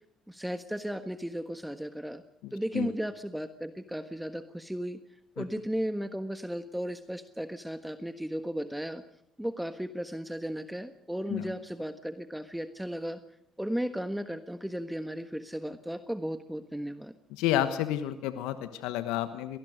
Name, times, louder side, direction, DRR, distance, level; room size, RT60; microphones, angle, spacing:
voice 1, 0.3-2.2 2.5-5.0 5.4-9.0 9.4-13.2 13.6-17.1, equal, 5° right, 10 dB, 1.4 m, -35 dB
voice 2, 17.3-19.6, left 12 dB, 80° left, 11 dB, 1.2 m, -30 dB
25.5 x 19.0 x 6.6 m, 0.78 s
supercardioid pair, 65°, 0 cm